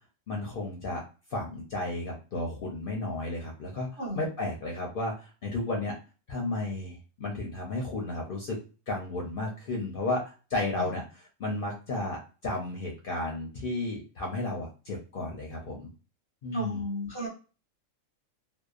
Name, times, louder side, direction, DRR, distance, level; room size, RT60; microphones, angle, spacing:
voice 1, 0.3-1.0 1.3-5.9 6.3-8.6 8.9-10.2 10.5-15.9 16.4-16.8, left 2 dB, 55° left, -1 dB, 0.7 m, -33 dB
voice 2, 16.5-17.3, left 1 dB, 25° right, -4 dB, 0.6 m, -33 dB
2.7 x 2.0 x 2.3 m, 0.34 s
omnidirectional pair, 1.3 m